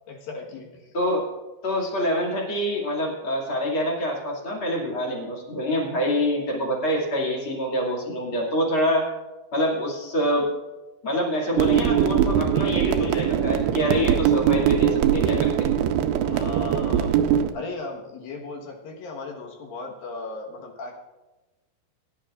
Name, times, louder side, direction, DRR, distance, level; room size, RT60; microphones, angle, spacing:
voice 1, 0.1-0.9 16.2-17.2 17.5-20.9, left 3 dB, 65° left, 0 dB, 2.8 m, -36 dB
voice 2, 0.9-1.2 1.6-9.1 9.5-10.5 11.0-15.5, equal, 35° left, -3 dB, 2.5 m, -26 dB
sound 1, 11.6-17.5, right 9 dB, 80° right, 2.4 m, -21 dB
21.0 x 11.0 x 2.5 m, 1.1 s
omnidirectional pair, 4.9 m